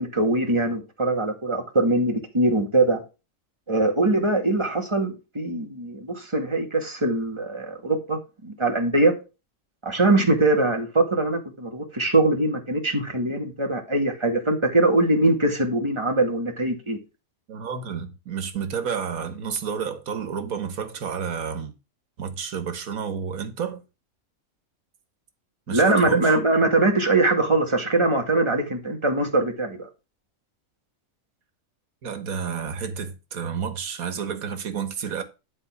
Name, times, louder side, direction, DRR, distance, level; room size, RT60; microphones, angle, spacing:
voice 1, 0.0-3.0 3.7-9.1 9.8-17.0 25.7-29.9, right 2 dB, 20° right, 2.1 m, -22 dB
voice 2, 17.5-21.7 22.2-23.8 25.7-26.4 32.0-35.2, right 7 dB, 85° right, 1.8 m, -30 dB
11.0 x 4.4 x 6.0 m
omnidirectional pair, 1.4 m